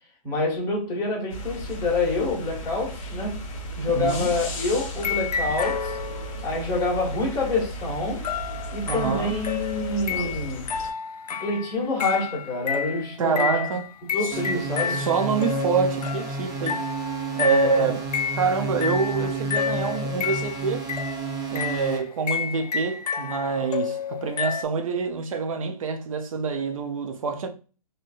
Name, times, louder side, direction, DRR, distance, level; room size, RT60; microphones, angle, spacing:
voice 1, 0.2-3.4 3.8-6.0 6.4-8.3 8.7-10.7 11.4-13.7 14.1-15.1 17.5-17.9, left 3 dB, 20° left, 1.4 m, -27 dB
sound 1, 1.3-10.9, right 1 dB, 55° left, 1.0 m, -35 dB
voice 2, 4.0-4.3 8.8-9.3 13.2-13.9 14.2-14.4 14.9-16.8 17.4-18.1 18.4-20.9 21.5-27.5, right 5 dB, 60° right, 0.6 m, -26 dB
sound 2, 5.0-6.6 8.2-24.6, left 7 dB, 90° left, 0.4 m, -30 dB
sound 3, 14.3-22.0, right 4 dB, 20° right, 0.7 m, -31 dB
3.7 x 2.6 x 2.5 m
hypercardioid pair, 140°, 20 cm